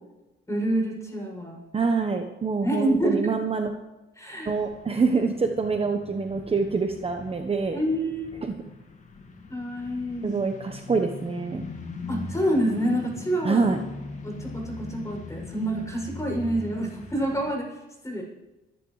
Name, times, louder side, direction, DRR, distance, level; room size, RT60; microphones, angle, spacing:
voice 1, 0.5-1.6 2.6-3.2 4.2-4.6 7.7-8.3 9.5-10.4 12.1-13.7 14.2-17.8 18.0-18.2, right 1 dB, 15° left, 0 dB, 7.0 m, -27 dB
voice 2, 1.7-3.7 4.5-7.8 8.4-8.5 10.2-11.7 13.4-13.8, right 4 dB, 30° right, 5 dB, 1.1 m, -25 dB
sound 1, 4.5-17.5, left 3 dB, 40° left, 2.1 m, -40 dB
27.0 x 11.5 x 3.3 m, 1.1 s
cardioid pair, 90°, 20 cm